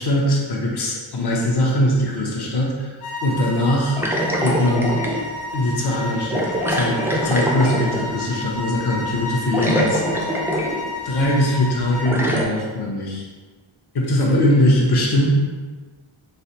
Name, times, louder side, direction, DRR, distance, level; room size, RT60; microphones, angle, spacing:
voice 1, 0.0-4.0 4.4-5.0 5.5-10.0 11.0-13.3 13.9-15.4, left 1 dB, 50° left, -2 dB, 0.7 m, -21 dB
sound 1, 3.0-12.2, left 2 dB, 85° left, 0.7 m, -32 dB
sound 2, 4.0-5.3 6.3-8.2 9.2-9.3 9.5-10.9 11.3-11.4 12.1-12.4, equal, 5° right, 0.4 m, -23 dB
3.2 x 3.2 x 2.8 m, 1.4 s
wide cardioid pair, 100°, 49 cm